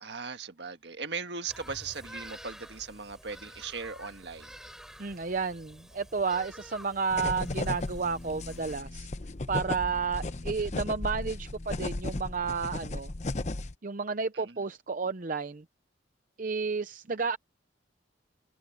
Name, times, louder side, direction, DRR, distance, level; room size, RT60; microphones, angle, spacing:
voice 1, 0.0-4.5 14.3-14.6, right 5 dB, 70° right, 1.6 m, -38 dB
Bird vocalization bird call bird song, 1.5-8.7, equal, 5° right, 7.6 m, -49 dB
voice 2, 5.0-9.1 9.5-13.1 13.8-15.6 16.4-17.4, right 5 dB, 45° right, 0.7 m, -31 dB
sound 1, 7.1-13.7, left 2 dB, 40° left, 0.8 m, -35 dB
head